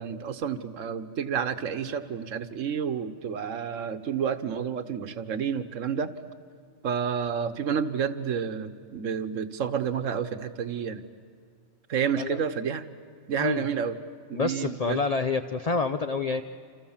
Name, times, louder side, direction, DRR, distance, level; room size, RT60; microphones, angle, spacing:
voice 1, 0.0-6.1 6.8-11.0 11.9-12.8 13.3-14.0 14.3-15.0, right 7 dB, 60° right, 11 dB, 1.4 m, -30 dB
voice 2, 14.3-16.4, left 4 dB, 40° left, 8 dB, 0.6 m, -27 dB
28.5 x 28.0 x 7.4 m, 2.2 s
omnidirectional pair, 1.5 m